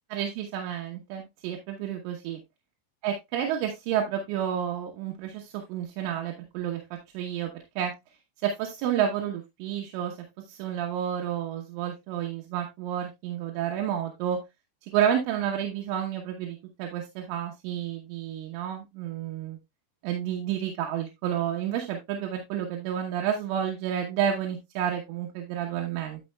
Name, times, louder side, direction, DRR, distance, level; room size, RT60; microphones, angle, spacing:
voice 1, 0.1-2.4 3.0-7.5 7.8-7.9 8.4-14.4 14.8-19.6 20.0-26.2, right 9 dB, 90° right, 2 dB, 3.6 m, -30 dB
11.0 x 6.3 x 2.2 m, 0.20 s
omnidirectional pair, 5.5 m